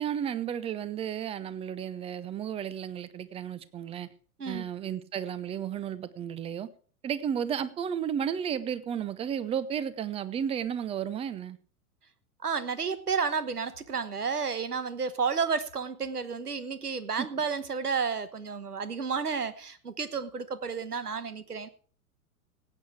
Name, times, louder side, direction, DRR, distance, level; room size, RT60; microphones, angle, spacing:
voice 1, 0.0-4.1 4.5-6.7 7.0-11.6 17.2-17.3, right 8 dB, 15° right, 0.5 m, -33 dB
voice 2, 12.4-21.7, right 5 dB, 85° right, 1.2 m, -31 dB
17.0 x 8.6 x 4.8 m
figure-of-eight pair, 95°, 45 cm